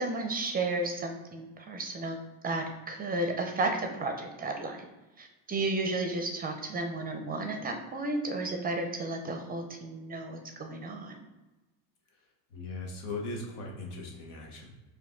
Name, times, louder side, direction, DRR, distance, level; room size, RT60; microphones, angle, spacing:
voice 1, 0.0-2.2 2.4-4.9 5.2-11.2, right 2 dB, 20° right, 4 dB, 0.5 m, -33 dB
voice 2, 12.5-14.7, left 2 dB, 90° left, -1 dB, 1.2 m, -39 dB
4.7 x 2.6 x 3.6 m, 1.1 s
supercardioid pair, 100°, 44 cm